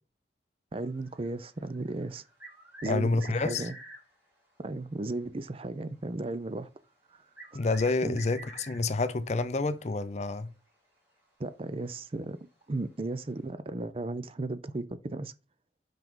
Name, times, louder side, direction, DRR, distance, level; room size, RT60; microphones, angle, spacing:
voice 1, 0.7-2.2 2.8-3.7 4.6-6.7 7.1-7.2 8.0-8.2 11.4-12.4 12.7-15.3, right 2 dB, 30° right, 0.5 m, -35 dB
sound 1, 0.8-4.1 6.5-6.6 7.4-9.0 10.7-10.8 11.2-11.3 13.0-13.1, right 2 dB, 10° right, 2.7 m, -48 dB
voice 2, 2.8-3.7 7.5-10.5, left 3 dB, 40° left, 0.5 m, -28 dB
5.9 x 5.2 x 3.7 m
head